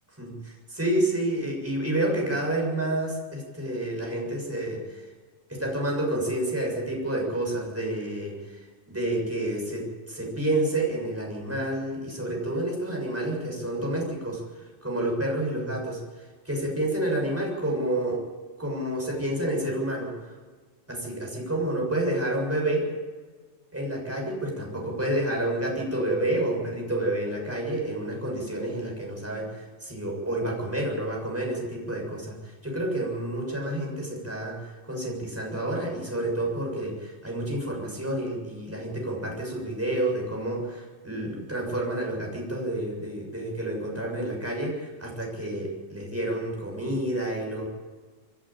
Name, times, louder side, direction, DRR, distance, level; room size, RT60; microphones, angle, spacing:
voice 1, 0.2-5.1 5.5-18.2 18.6-20.4 20.9-22.9 23.7-47.7, right 1 dB, 5° right, -2 dB, 6.6 m, -29 dB
28.0 x 11.0 x 9.0 m, 1.4 s
omnidirectional pair, 4.1 m